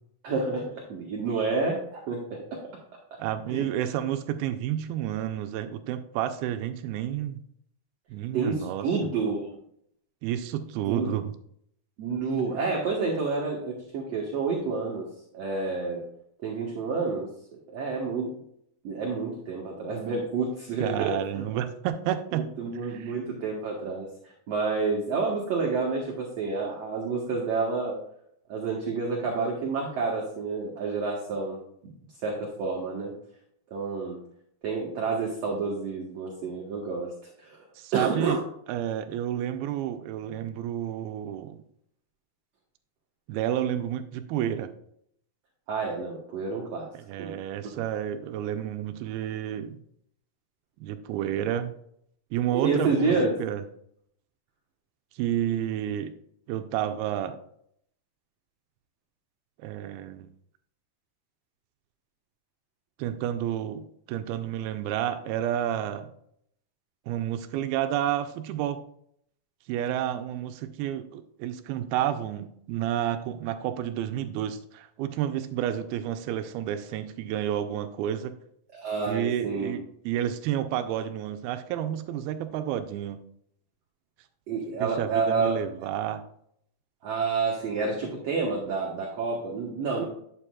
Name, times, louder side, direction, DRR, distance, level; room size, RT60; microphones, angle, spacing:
voice 1, 0.2-2.6 3.5-3.9 8.3-9.6 10.9-11.1 12.0-15.1 15.3-16.0 16.4-17.3 17.7-18.3 18.8-21.5 22.3-24.1 24.5-28.0 28.5-31.9 32.2-33.1 33.7-34.2 34.6-37.1 37.4-37.7 37.9-38.4 45.7-46.9 47.2-47.3 52.5-53.4 78.7-79.7 84.5-85.5 87.0-90.0, right 4 dB, 65° right, -2 dB, 1.7 m, -29 dB
voice 2, 3.2-7.4 8.1-8.9 10.2-11.3 20.8-22.5 22.8-23.2 37.8-38.4 38.7-41.6 43.3-44.7 46.9-49.8 50.8-51.8 52.3-53.1 53.4-53.6 55.2-56.1 56.5-57.4 59.6-60.3 63.0-66.1 67.1-68.8 69.7-78.3 79.1-83.2 84.8-86.2, right 11 dB, 85° right, 8 dB, 2.5 m, -30 dB
9.8 x 7.2 x 2.3 m, 0.69 s
omnidirectional pair, 4.3 m